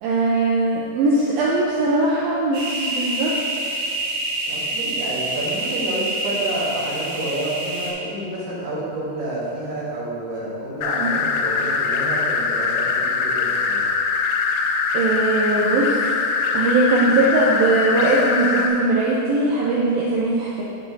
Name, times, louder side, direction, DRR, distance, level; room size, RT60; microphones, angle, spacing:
voice 1, 0.0-3.3 11.0-11.1 14.9-16.0 16.5-20.6, right 2 dB, 75° right, -5 dB, 2.2 m, -20 dB
sound 1, 2.5-7.9, right 1 dB, 60° right, 2.9 m, -27 dB
voice 2, 4.5-13.8, right 1 dB, 40° right, -8 dB, 1.9 m, -29 dB
sound 2, 10.8-18.7, left 5 dB, 85° left, 2.6 m, -22 dB
9.1 x 6.8 x 3.3 m, 2.6 s
omnidirectional pair, 4.6 m